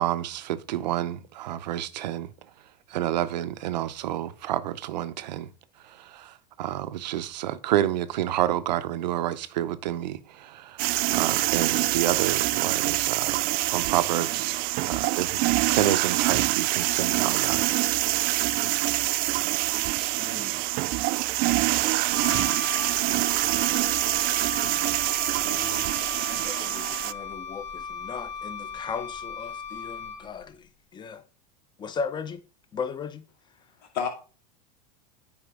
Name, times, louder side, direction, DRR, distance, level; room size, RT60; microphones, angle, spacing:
voice 1, 0.0-2.3 2.9-5.5 5.8-13.4 13.7-14.6 14.9-17.7, right 12 dB, 90° right, 0.7 m, -29 dB
sound 1, 10.8-27.1, right 19 dB, 45° right, 0.4 m, -25 dB
voice 2, 20.0-20.6 22.3-22.5 24.7-25.0 26.4-31.2 31.8-32.4 32.7-33.2, left 5 dB, 20° left, 0.8 m, -37 dB
Wind instrument woodwind instrument, 22.1-30.4, left 5 dB, 50° left, 2.4 m, -37 dB
voice 3, 25.4-26.0 33.9-34.1, left 7 dB, 80° left, 2.3 m, -32 dB
9.7 x 4.9 x 3.6 m
supercardioid pair, 120°, 21 cm